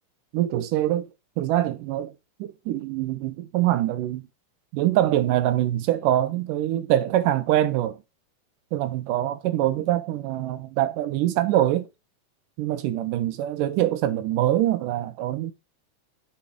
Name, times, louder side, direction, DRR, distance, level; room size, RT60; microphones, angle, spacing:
voice 1, 0.3-1.1 1.4-2.1 2.4-4.3 4.7-8.0 8.7-11.9 12.6-15.5, right 13 dB, 85° right, 2.5 m, -24 dB
6.8 x 5.7 x 5.0 m
omnidirectional pair, 3.8 m